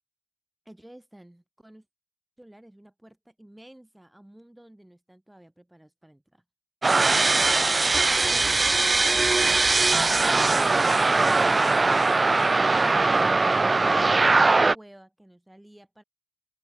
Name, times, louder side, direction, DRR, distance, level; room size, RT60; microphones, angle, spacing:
voice 1, 0.6-1.9 2.4-6.4 7.9-9.0 10.4-16.0, right 1 dB, 5° right, 6.7 m, -51 dB
sound 1, 6.8-14.8, right 3 dB, 25° right, 0.3 m, -21 dB
open air
cardioid pair, 90°, 0 cm